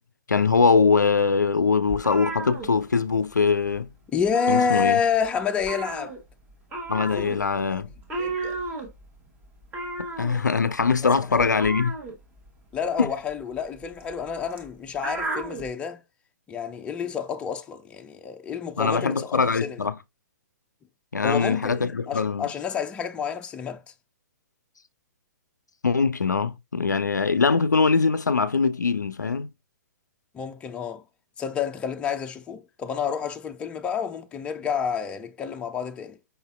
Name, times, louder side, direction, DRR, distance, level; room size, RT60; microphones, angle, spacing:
voice 1, 0.3-3.9 4.5-5.0 6.9-7.9 10.2-11.9 13.0-13.1 18.8-20.0 21.1-22.5 25.8-29.5, left 5 dB, 80° left, 0.4 m, -22 dB
sound 1, 1.9-3.4 3.6-3.9 4.2-5.3 5.6-15.7, right 2 dB, 15° right, 1.0 m, -34 dB
voice 2, 4.1-6.1 7.1-7.8 8.2-8.6 11.3-11.5 12.7-16.0 16.5-19.8 21.2-23.8 30.3-31.0 31.4-36.2, left 6 dB, 10° left, 0.4 m, -29 dB
5.4 x 3.9 x 2.3 m
figure-of-eight pair, 115°, 10 cm